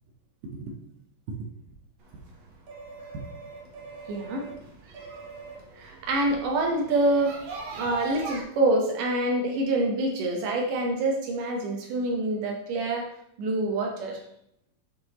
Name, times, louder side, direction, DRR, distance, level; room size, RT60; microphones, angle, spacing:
sound 1, 2.0-8.4, right 3 dB, 65° right, 1.3 m, -41 dB
voice 1, 4.1-4.5 5.0-5.2 5.5-7.4 7.7-13.1 13.4-14.2, right 2 dB, 80° right, 1 dB, 2.5 m, -26 dB
7.8 x 5.9 x 2.9 m, 0.72 s
omnidirectional pair, 3.7 m